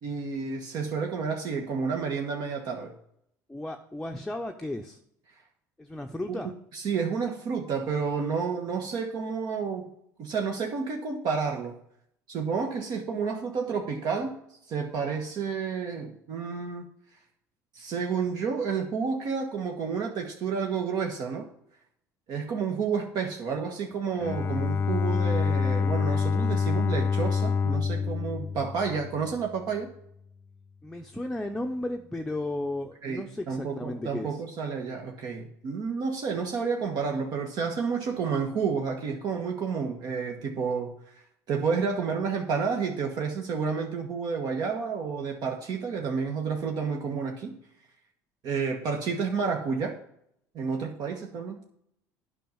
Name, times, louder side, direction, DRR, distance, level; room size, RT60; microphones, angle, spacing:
voice 1, 0.0-2.9 6.3-6.4 6.7-9.9 10.2-11.8 12.3-14.4 14.7-16.9 17.7-21.5 22.3-29.9 33.0-41.0 41.5-47.6 48.4-50.0 50.5-51.6, right 5 dB, 55° right, 2 dB, 1.5 m, -30 dB
voice 2, 3.5-5.0 5.8-6.5 30.8-34.4, left 1 dB, 5° left, 3 dB, 0.7 m, -34 dB
Bowed string instrument, 24.2-29.4, left 5 dB, 30° left, 0.3 m, -27 dB
9.1 x 5.5 x 7.2 m, 0.71 s
supercardioid pair, 100°, 8 cm